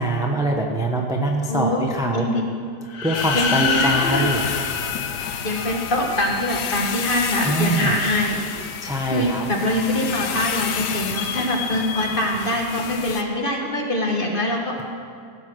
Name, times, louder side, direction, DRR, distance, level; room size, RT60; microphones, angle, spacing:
voice 1, 0.0-2.3 3.0-4.4 7.4-8.0 8.8-9.5, right 1 dB, 5° right, 1 dB, 0.4 m, -23 dB
voice 2, 1.5-1.8 2.1-2.4 3.3-4.3 5.4-8.4 8.8-14.8, left 1 dB, 30° left, 1 dB, 1.4 m, -24 dB
sound 1, 2.9-5.8, left 5 dB, 55° left, 1.2 m, -26 dB
sound 2, 3.1-13.2, left 8 dB, 70° left, 1.2 m, -30 dB
16.5 x 8.2 x 6.2 m, 2.3 s
omnidirectional pair, 2.0 m